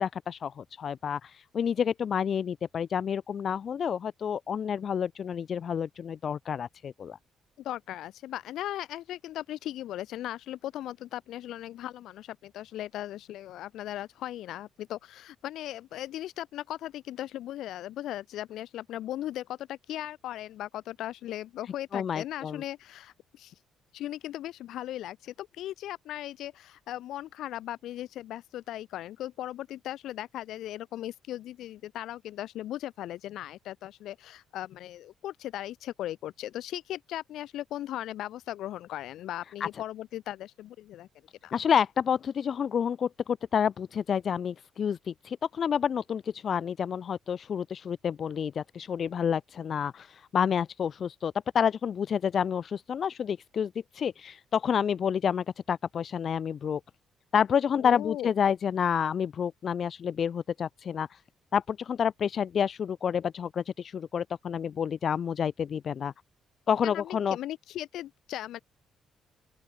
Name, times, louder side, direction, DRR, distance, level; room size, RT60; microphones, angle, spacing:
voice 1, 0.0-7.2 21.9-22.6 39.6-39.7 41.5-56.8 57.3-61.2 61.5-66.1 66.7-67.4, left 7 dB, 55° left, 0.3 m, -29 dB
voice 2, 7.6-23.5 23.9-41.1 41.4-41.5 57.8-58.3 66.8-68.6, left 13 dB, 80° left, 4.8 m, -38 dB
open air
cardioid pair, 90°, 0 cm